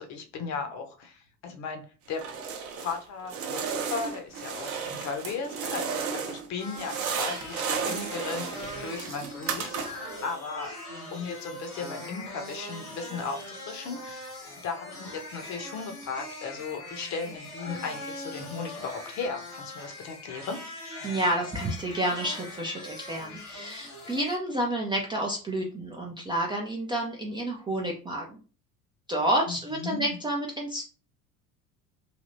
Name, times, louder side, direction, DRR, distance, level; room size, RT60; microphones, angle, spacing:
voice 1, 0.0-1.8 2.1-2.3 2.8-10.8 11.1-14.3 14.6-20.6 29.5-30.2, left 5 dB, 40° left, 5 dB, 0.8 m, -36 dB
sound 1, 2.1-3.0 3.3-6.5 6.7-10.1, right 6 dB, 45° right, 0.7 m, -33 dB
sound 2, 6.6-24.4, left 1 dB, 80° left, 1.6 m, -41 dB
voice 2, 21.0-28.4 29.1-30.8, right 1 dB, 10° right, -1 dB, 0.4 m, -29 dB
3.3 x 2.6 x 2.6 m, 0.36 s
figure-of-eight pair, 65°, 45 cm